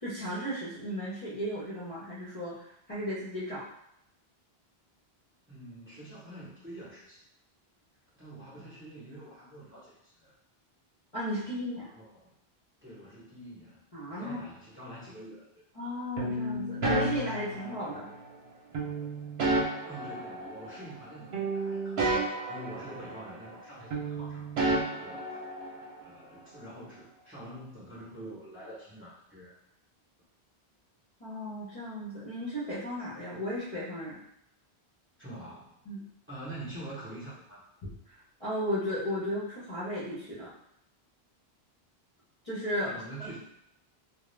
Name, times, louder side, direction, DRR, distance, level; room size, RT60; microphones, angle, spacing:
voice 1, 0.0-2.5 2.9-3.6 11.1-11.9 13.9-14.4 15.8-18.1 31.2-34.2 35.9-36.0 37.8-37.9 38.4-40.5 42.4-43.3, equal, 40° left, -9 dB, 0.6 m, -35 dB
voice 2, 5.5-7.2 8.2-10.3 11.4-11.5 11.8-12.3 12.8-13.8 14.1-15.5 19.9-22.1 22.5-25.4 26.0-29.5 35.2-35.8 36.3-37.7 42.8-43.4, right 1 dB, 15° right, -8 dB, 0.8 m, -46 dB
sound 1, 16.2-18.2 18.7-21.1 21.3-23.6 23.9-26.0, right 2 dB, 75° right, 0.8 m, -32 dB
2.3 x 2.1 x 3.1 m, 0.76 s
omnidirectional pair, 1.1 m